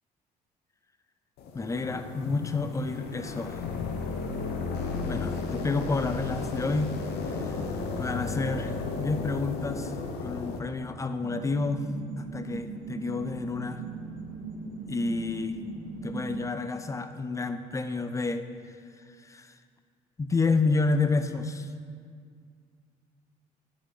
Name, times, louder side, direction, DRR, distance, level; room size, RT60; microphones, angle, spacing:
sound 1, 1.4-10.6, left 4 dB, 75° left, 0.7 m, -34 dB
voice 1, 1.5-3.6 5.0-7.0 7.3-7.6 7.9-9.9 10.2-11.8 12.2-13.8 14.9-15.6 16.0-18.4 19.2-19.5 20.2-21.7, left 3 dB, 20° left, 9 dB, 0.5 m, -30 dB
sound 2, 11.2-16.4, right 4 dB, 60° right, 0.9 m, -39 dB
10.0 x 4.2 x 3.8 m, 2.1 s
supercardioid pair, 75°, 16 cm